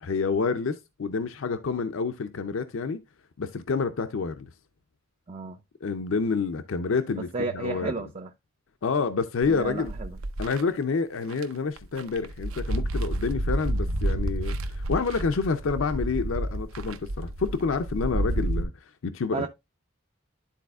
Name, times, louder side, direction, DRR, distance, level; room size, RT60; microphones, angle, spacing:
voice 1, 0.0-3.0 3.4-4.5 5.8-7.9 8.8-9.9 10.4-18.7 19.0-19.5, left 4 dB, 70° left, 0.5 m, -28 dB
voice 2, 7.1-8.3 9.5-10.1 19.3-19.5, right 4 dB, 30° right, 0.4 m, -32 dB
sound 1, 9.4-10.6 11.3-11.4 11.8-18.6, right 1 dB, 80° right, 0.7 m, -30 dB
12.0 x 4.1 x 2.3 m
head